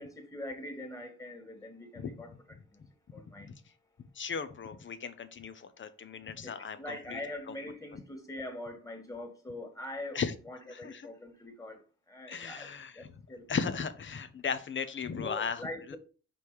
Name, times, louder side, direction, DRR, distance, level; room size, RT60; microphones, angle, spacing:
voice 1, 0.0-2.8 3.1-3.5 6.4-13.5 15.2-16.0, left 1 dB, 10° left, 2.0 m, -43 dB
voice 2, 4.1-7.2 10.1-10.3 10.7-11.0 12.3-13.1 13.5-16.0, left 6 dB, 40° left, 0.9 m, -36 dB
5.3 x 4.7 x 5.0 m
cardioid pair, 90°, 30 cm